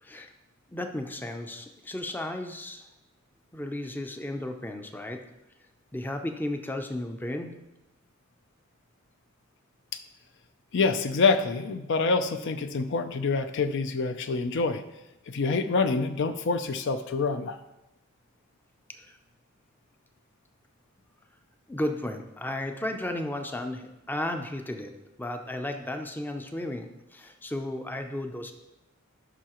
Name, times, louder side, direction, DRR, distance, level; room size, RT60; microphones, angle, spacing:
voice 1, 0.0-0.3 0.7-2.9 3.5-5.2 5.9-7.5 18.9-19.2 21.7-24.9 25.2-28.5, left 1 dB, 10° left, 5 dB, 0.5 m, -34 dB
voice 2, 10.7-14.8 15.3-17.6, left 4 dB, 60° left, 9 dB, 0.5 m, -26 dB
11.0 x 5.6 x 3.0 m, 0.98 s
head